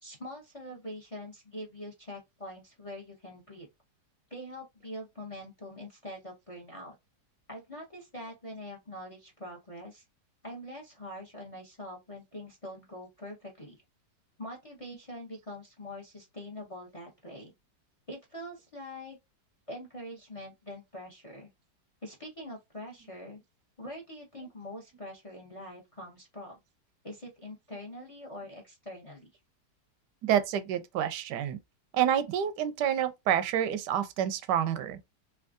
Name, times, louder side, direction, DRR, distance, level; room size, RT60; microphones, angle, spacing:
voice 1, 0.0-3.7 4.3-6.9 7.5-10.0 10.4-13.8 14.4-17.5 18.1-19.2 19.7-21.5 22.0-23.4 23.8-26.6 27.0-29.3, left 1 dB, 25° left, 0.7 m, -44 dB
voice 2, 30.2-31.6 31.9-35.0, right 10 dB, 85° right, 1.2 m, -28 dB
3.4 x 2.8 x 2.4 m
omnidirectional pair, 1.8 m